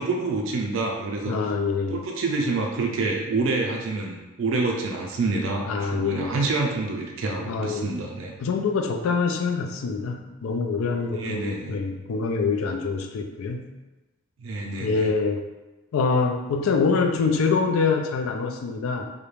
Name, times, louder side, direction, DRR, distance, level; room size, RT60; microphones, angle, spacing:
voice 1, 0.0-1.3 1.9-8.3 11.2-11.7 14.4-15.0, right 3 dB, 60° right, 0 dB, 0.4 m, -27 dB
voice 2, 1.2-2.0 5.6-6.4 7.4-7.9 8.4-13.7 14.8-15.4 15.9-19.0, left 4 dB, 75° left, 4 dB, 0.3 m, -25 dB
2.4 x 2.1 x 3.0 m, 1.1 s
head